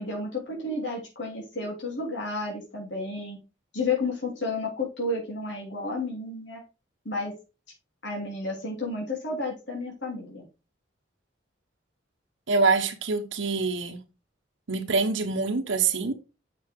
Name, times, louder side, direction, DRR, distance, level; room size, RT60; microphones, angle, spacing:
voice 1, 0.0-3.4 3.7-6.6 7.0-7.3 8.0-10.4, left 3 dB, 70° left, 3.4 m, -31 dB
voice 2, 12.5-14.0 14.7-16.1, right 4 dB, 85° right, 1.1 m, -25 dB
7.8 x 5.8 x 3.7 m
head